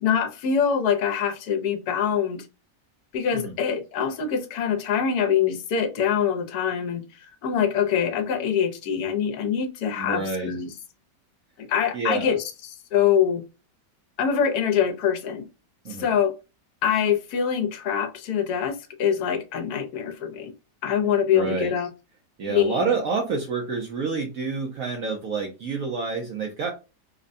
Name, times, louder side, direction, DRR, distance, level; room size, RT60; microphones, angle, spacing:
voice 1, 0.0-2.4 3.1-10.7 11.6-13.4 14.2-15.4 16.0-16.3 16.8-20.5 20.8-21.9 22.5-22.9, left 8 dB, 70° left, 1.2 m, -24 dB
voice 2, 10.0-10.5 11.9-12.4 15.8-16.1 21.3-21.7 22.4-26.7, right 4 dB, 65° right, 1.0 m, -28 dB
5.0 x 2.1 x 2.6 m
omnidirectional pair, 1.8 m